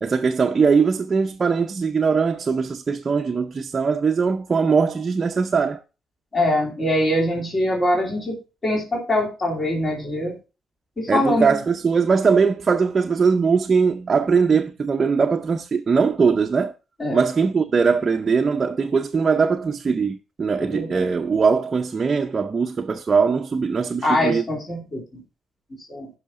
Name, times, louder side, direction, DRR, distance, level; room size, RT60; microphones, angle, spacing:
voice 1, 0.0-5.8 11.1-16.7 17.1-24.4, right 5 dB, 35° right, 0.6 m, -20 dB
voice 2, 6.3-8.4 8.6-10.3 11.0-11.6 17.0-17.2 20.6-21.1 24.0-25.0 25.9-26.1, left 1 dB, 30° left, 3.0 m, -23 dB
16.0 x 5.6 x 2.5 m
cardioid pair, 90°, 0 cm